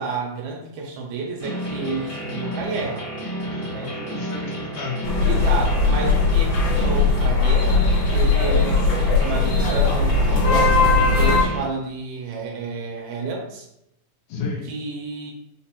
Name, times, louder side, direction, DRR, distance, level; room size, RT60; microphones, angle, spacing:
voice 1, 0.0-3.1 3.7-4.0 5.3-13.7 14.7-15.3, right 3 dB, 80° right, 0 dB, 2.0 m, -30 dB
sound 1, 1.4-11.6, right 1 dB, 35° left, 0.5 m, -31 dB
voice 2, 3.5-5.1 14.3-14.7, left 4 dB, 65° left, -4 dB, 1.9 m, -32 dB
sound 2, 5.0-11.4, left 3 dB, 85° left, 2.5 m, -19 dB
5.3 x 2.5 x 2.8 m, 0.79 s
omnidirectional pair, 3.5 m